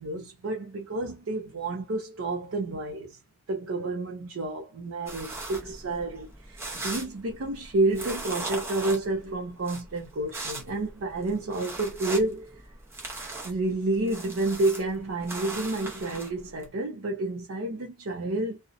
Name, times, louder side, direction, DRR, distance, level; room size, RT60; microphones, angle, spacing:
voice 1, 0.0-3.2 3.5-12.6 13.4-18.6, right 2 dB, 65° right, 0.5 m, -30 dB
sound 1, 5.1-16.7, right 2 dB, 10° right, 0.6 m, -39 dB
2.7 x 2.0 x 2.4 m
head